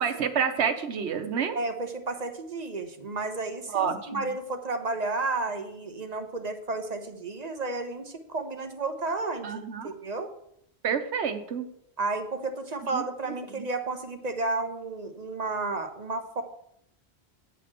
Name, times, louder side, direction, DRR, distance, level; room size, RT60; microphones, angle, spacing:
voice 1, 0.0-1.6 3.7-4.3 9.4-9.9 10.8-11.7 12.8-13.0 13.5-13.6, right 7 dB, 85° right, 8 dB, 1.2 m, -29 dB
voice 2, 1.5-10.3 12.0-16.4, right 3 dB, 40° right, 6 dB, 0.9 m, -32 dB
9.1 x 4.2 x 7.4 m, 0.73 s
omnidirectional pair, 1.1 m